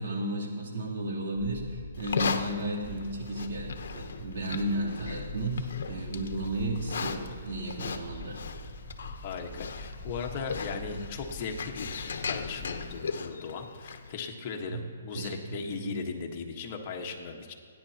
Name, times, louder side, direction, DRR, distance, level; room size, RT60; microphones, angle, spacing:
voice 1, 0.0-8.4 10.7-11.0 14.7-14.8 15.1-15.9, right 1 dB, 65° right, -4 dB, 3.1 m, -34 dB
sound 1, 1.4-13.0, left 2 dB, ahead, 0.9 m, -44 dB
Livestock farm animals working animals, 1.9-14.1, left 6 dB, 70° left, 0.9 m, -38 dB
voice 2, 9.2-17.5, left 5 dB, 35° left, 2 dB, 1.4 m, -38 dB
30.0 x 10.5 x 2.9 m, 2.1 s
hypercardioid pair, 155°, 0 cm